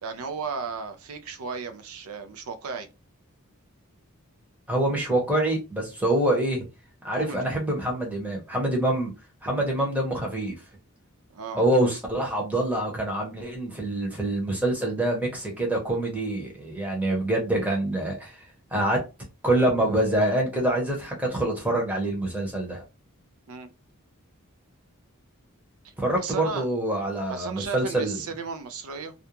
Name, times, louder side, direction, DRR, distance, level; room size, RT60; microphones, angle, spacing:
voice 1, 0.0-2.9 7.1-7.5 11.3-11.6 23.5-23.7 26.2-26.7 27.3-29.1, right 5 dB, 80° right, 0.5 m, -35 dB
voice 2, 4.7-6.7 7.0-9.1 9.4-10.6 11.5-18.4 18.7-19.0 19.4-22.8 26.0-28.2, right 1 dB, 5° right, 0.8 m, -25 dB
2.4 x 2.2 x 2.9 m
head